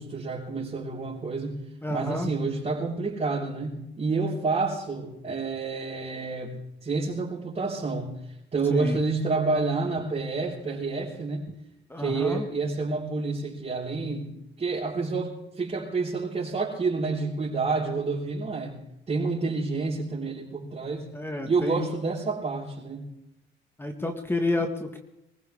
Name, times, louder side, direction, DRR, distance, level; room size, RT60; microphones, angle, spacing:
voice 1, 0.0-1.6 1.9-8.1 8.5-11.4 12.0-14.3 14.6-18.8 19.1-21.0 21.4-23.1, right 3 dB, 35° right, -6 dB, 5.4 m, -29 dB
voice 2, 1.8-2.3 8.7-9.0 11.9-12.5 21.1-21.9 23.8-25.0, left 2 dB, 10° left, 4 dB, 1.8 m, -30 dB
24.0 x 15.0 x 3.7 m, 0.86 s
cardioid pair, 90°, 20 cm